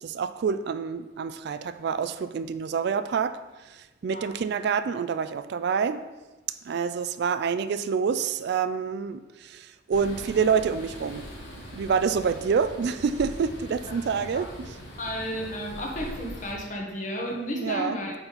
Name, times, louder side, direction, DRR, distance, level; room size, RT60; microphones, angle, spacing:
voice 1, 0.0-3.4 3.7-6.0 6.6-11.2 11.7-14.7 17.5-18.0, right 6 dB, 55° right, 11 dB, 0.3 m, -27 dB
voice 2, 4.0-4.4 13.9-14.0 14.4-14.5 15.0-18.1, equal, 40° left, -1 dB, 1.3 m, -33 dB
sound 1, 9.9-16.5, equal, 80° left, 1.4 m, -41 dB
8.7 x 4.0 x 4.1 m, 1.1 s
head